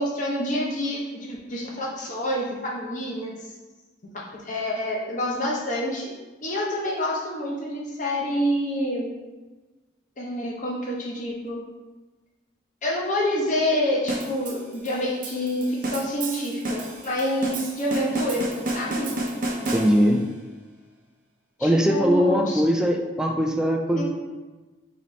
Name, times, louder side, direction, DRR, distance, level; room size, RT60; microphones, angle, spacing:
voice 1, 0.0-3.4 4.1-6.1 6.4-9.1 10.2-11.6 12.8-19.1 21.6-22.6 23.9-24.0, left 1 dB, 40° left, -3 dB, 0.9 m, -27 dB
sound 1, 14.1-20.3, right 1 dB, 45° right, 0.6 m, -31 dB
voice 2, 19.7-20.2 21.6-24.0, equal, 5° right, 2 dB, 0.3 m, -21 dB
4.1 x 3.1 x 4.1 m, 1.2 s
head